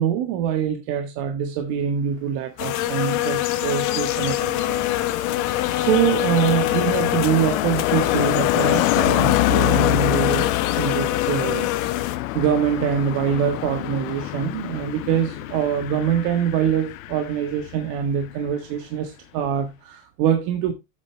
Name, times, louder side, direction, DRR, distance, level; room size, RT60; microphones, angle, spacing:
voice 1, 0.0-4.8 5.2-5.4 5.7-12.0 12.3-20.7, right 8 dB, 55° right, 1.6 m, -24 dB
sound 1, 2.6-12.2, left 14 dB, 45° left, 1.2 m, -25 dB
Car passing by, 3.2-18.0 18.2-18.5, left 18 dB, 70° left, 0.8 m, -26 dB
8.3 x 6.8 x 3.4 m
supercardioid pair, 115°, 42 cm